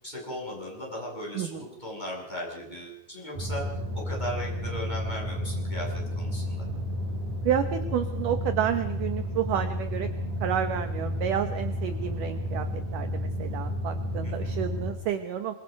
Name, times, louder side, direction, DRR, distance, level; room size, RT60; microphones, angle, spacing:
voice 1, 0.0-6.7 14.2-14.6, equal, 10° left, -2 dB, 7.3 m, -37 dB
sound 1, 3.3-14.9, equal, 45° right, 7.1 m, -32 dB
voice 2, 7.4-10.1 10.4-15.5, right 9 dB, 75° right, 9 dB, 2.0 m, -30 dB
26.5 x 23.5 x 5.3 m, 0.88 s
omnidirectional pair, 5.2 m